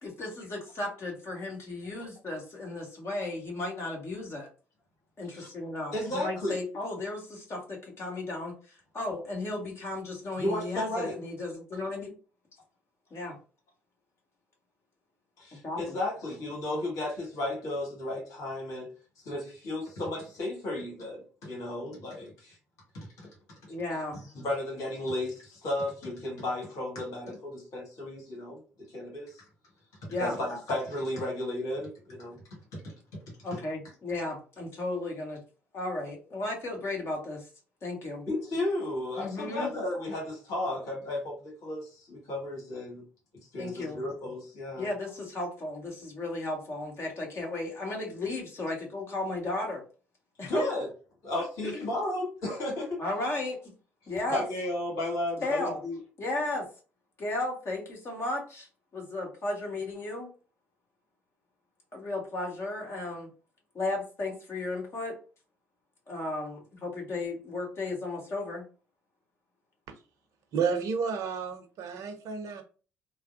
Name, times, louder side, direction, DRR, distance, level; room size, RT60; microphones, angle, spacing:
voice 1, 0.0-4.5 5.2-8.5 8.9-12.1 13.1-13.4 15.6-15.9 23.7-24.2 30.1-30.6 33.4-35.4 35.7-37.4 37.8-38.2 39.2-39.7 43.6-44.0 44.8-49.8 50.4-50.7 51.6-51.9 53.0-53.6 54.1-54.4 55.4-55.8 56.2-56.7 57.2-58.7 58.9-60.3 61.9-63.3 63.7-65.2 66.1-68.6, left 2 dB, 45° left, 1.4 m, -34 dB
voice 2, 5.9-6.6 10.4-11.2 15.4-18.9 19.2-22.6 22.9-23.3 24.1-28.6 28.9-29.4 30.2-32.4 32.7-32.9 38.3-43.0 43.5-44.9 50.4-50.9 51.2-53.0 54.3-56.0, left 1 dB, 60° left, 1.6 m, -33 dB
voice 3, 70.5-72.6, right 6 dB, 60° right, 0.6 m, -31 dB
3.3 x 2.0 x 2.6 m
figure-of-eight pair, 50°, 6 cm